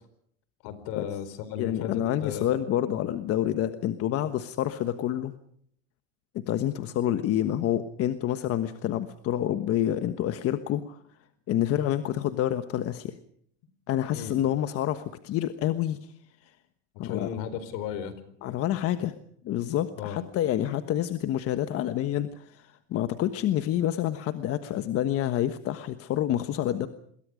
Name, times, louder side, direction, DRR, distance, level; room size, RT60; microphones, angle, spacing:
voice 1, 0.6-2.5 14.1-14.4 16.9-18.1 20.0-20.2, left 9 dB, 65° left, 13 dB, 4.6 m, -35 dB
voice 2, 1.6-5.3 6.3-11.0 11.5-13.2 13.9-16.0 17.0-17.3 18.4-19.1 19.4-26.9, left 12 dB, 45° left, 10 dB, 1.3 m, -28 dB
27.5 x 22.0 x 5.1 m, 0.66 s
supercardioid pair, 135°, 32 cm